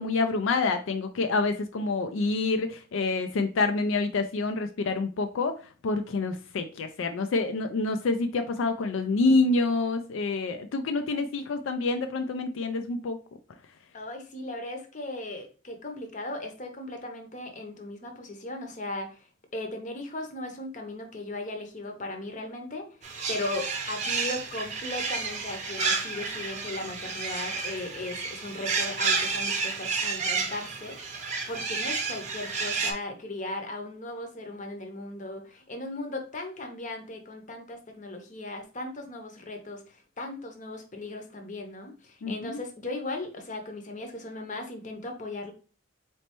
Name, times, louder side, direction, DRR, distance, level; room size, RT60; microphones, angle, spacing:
voice 1, 0.0-13.2 42.2-42.6, left 3 dB, 80° left, 7 dB, 0.4 m, -27 dB
voice 2, 13.9-19.3 19.5-45.5, left 2 dB, 40° left, 4 dB, 0.7 m, -37 dB
sound 1, 23.0-32.9, right 4 dB, 35° right, 0.6 m, -31 dB
4.1 x 3.2 x 2.9 m, 0.36 s
head